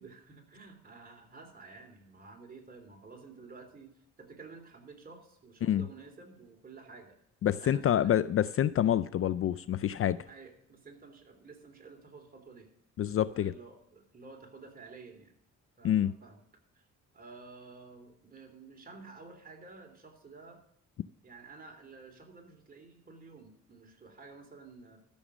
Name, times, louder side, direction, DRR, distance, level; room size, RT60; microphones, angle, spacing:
voice 1, 0.0-7.2 7.6-8.1 9.7-9.9 10.3-12.7 13.3-15.4 15.8-16.4 16.7-16.9 17.1-20.6 21.2-25.0, right 4 dB, 30° right, 2 dB, 3.0 m, -51 dB
voice 2, 7.4-10.2 13.0-13.5 15.8-16.1, left 10 dB, 50° left, 16 dB, 0.4 m, -27 dB
13.5 x 6.4 x 6.3 m, 0.73 s
cardioid pair, 90°, 30 cm